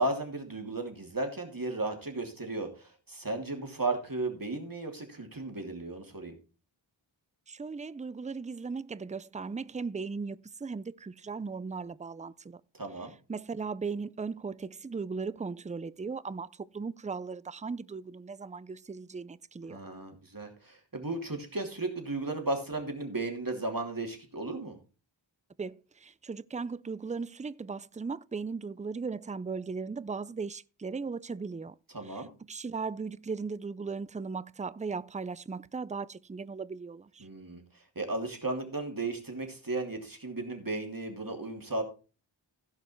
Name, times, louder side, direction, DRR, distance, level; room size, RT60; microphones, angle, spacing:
voice 1, 0.0-6.4 12.8-13.1 19.7-24.8 31.9-32.3 37.2-41.8, right 2 dB, 45° right, 2.9 m, -35 dB
voice 2, 7.5-12.6 13.3-19.8 25.6-31.8 32.0-37.3, right 4 dB, 15° right, 0.4 m, -37 dB
16.0 x 5.4 x 4.5 m
wide cardioid pair, 50°, 47 cm